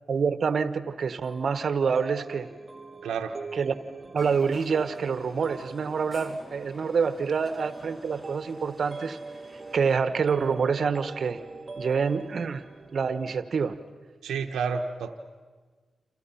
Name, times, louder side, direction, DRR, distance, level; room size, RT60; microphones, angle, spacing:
voice 1, 0.1-2.5 3.5-3.7 4.1-9.2 9.7-11.4 11.8-12.6 12.9-13.8, right 5 dB, 65° right, 11 dB, 1.4 m, -27 dB
sound 1, 1.2-13.8, right 3 dB, 45° right, 1.8 m, -43 dB
voice 2, 3.0-3.4 14.2-15.2, right 5 dB, 90° right, 4 dB, 1.2 m, -30 dB
sound 2, 4.2-10.0, left 2 dB, 40° left, 3.8 m, -49 dB
29.5 x 28.0 x 5.9 m, 1.4 s
supercardioid pair, 45°, 0 cm